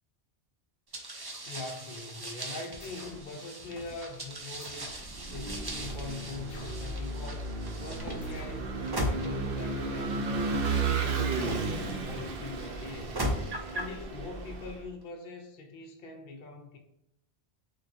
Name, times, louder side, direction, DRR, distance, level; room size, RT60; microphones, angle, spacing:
sound 1, 0.9-12.2 12.9-14.0, equal, 30° right, 0.4 m, -39 dB
voice 1, 1.4-4.9 5.3-7.5 7.8-10.3 10.7-13.2 13.7-16.8, left 3 dB, 55° left, 0.7 m, -43 dB
sound 2, 2.8-3.3 4.6-5.2 6.5-7.0 8.2-8.7, left 5 dB, 85° left, 0.9 m, -50 dB
Vehicle / Engine, 5.0-14.8, right 3 dB, 65° right, 0.7 m, -34 dB
6.4 x 2.2 x 2.8 m
omnidirectional pair, 1.1 m